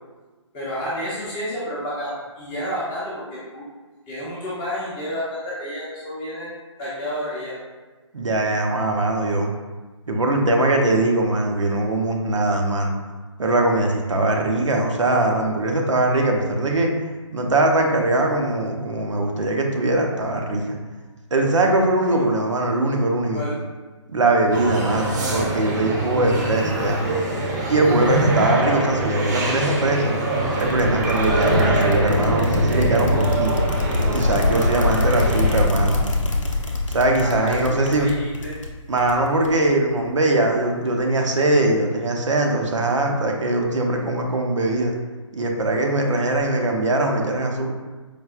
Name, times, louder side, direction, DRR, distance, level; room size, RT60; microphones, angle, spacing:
voice 1, 0.5-3.7 4.1-6.5 6.8-7.6 23.3-23.6 34.9-36.0 37.2-38.5, equal, 15° left, -8 dB, 0.6 m, -30 dB
voice 2, 8.1-9.5 10.1-12.9 13.4-16.9 17.3-20.8 21.3-23.4 24.1-27.0 27.7-30.1 30.5-33.6 34.1-36.0 36.9-38.1 38.9-44.9 45.3-47.7, right 2 dB, 75° right, 1 dB, 0.6 m, -21 dB
sound 1, 24.5-35.6, right 2 dB, 35° right, 0.6 m, -24 dB
sound 2, 30.5-39.7, left 2 dB, 80° left, 0.6 m, -25 dB
4.7 x 2.3 x 2.3 m, 1.3 s
figure-of-eight pair, 140°, 16 cm